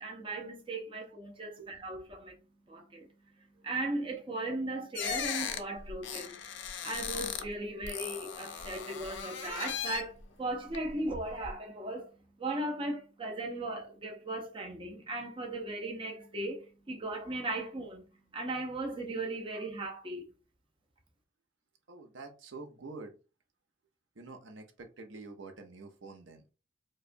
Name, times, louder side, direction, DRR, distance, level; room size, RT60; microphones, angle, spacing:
voice 1, 0.0-2.4 2.7-3.1 3.6-6.4 6.8-12.1 12.4-18.0 18.3-20.3, right 2 dB, 25° right, 0.5 m, -37 dB
sound 1, 5.0-7.5 7.8-10.2 10.7-11.5, left 8 dB, 60° left, 0.4 m, -38 dB
voice 2, 21.9-23.2 24.2-26.4, right 3 dB, 65° right, 0.6 m, -47 dB
4.7 x 2.1 x 2.6 m
head